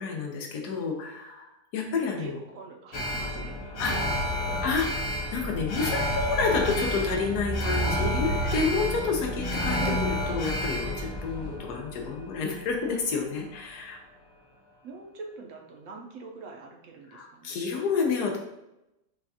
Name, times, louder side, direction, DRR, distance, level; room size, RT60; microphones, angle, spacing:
voice 1, 0.0-2.4 3.8-3.9 4.6-14.0 17.1-18.4, left 4 dB, 80° left, 1 dB, 1.3 m, -29 dB
voice 2, 2.2-4.6 9.8-10.0 14.8-17.6, right 3 dB, 65° right, 1 dB, 0.9 m, -43 dB
Alarm, 2.9-13.2 13.5-13.6, left 1 dB, 60° left, 1.2 m, -31 dB
sound 1, 4.5-11.6, right 2 dB, 90° right, 1.3 m, -34 dB
5.6 x 2.4 x 2.7 m, 0.90 s
omnidirectional pair, 1.7 m